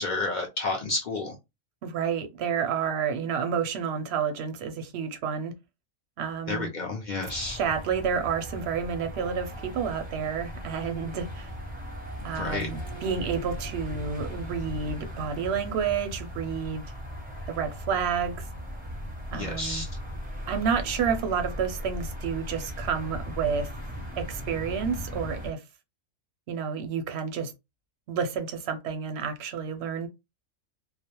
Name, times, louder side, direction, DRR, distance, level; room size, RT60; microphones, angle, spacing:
voice 1, 0.0-1.4 6.5-7.6 12.4-12.7 19.3-19.8, left 3 dB, 65° left, 0.4 m, -30 dB
voice 2, 1.8-5.5 6.2-6.7 7.3-11.5 12.2-16.8 17.5-18.5 19.3-19.8 20.5-23.7 24.2-25.6 26.5-27.5 28.1-30.1, right 6 dB, 65° right, 0.7 m, -30 dB
sound 1, 7.2-25.5, equal, 10° right, 0.4 m, -38 dB
2.3 x 2.0 x 2.9 m
omnidirectional pair, 1.4 m